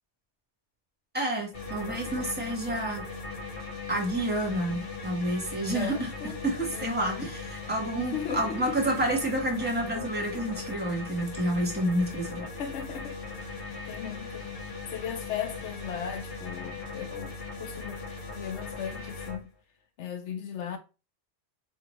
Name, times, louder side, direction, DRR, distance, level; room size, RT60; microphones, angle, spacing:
voice 1, 1.1-3.0 3.9-6.1 6.4-12.5, right 1 dB, 10° right, 1.1 m, -29 dB
sound 1, 1.5-19.4, left 4 dB, 55° left, 1.1 m, -39 dB
voice 2, 5.7-6.4 6.7-7.3 8.1-8.7 12.6-13.2 13.8-14.5 14.9-18.0 18.3-19.5 20.0-20.8, left 8 dB, 80° left, 1.0 m, -37 dB
4.5 x 2.4 x 3.1 m
omnidirectional pair, 1.2 m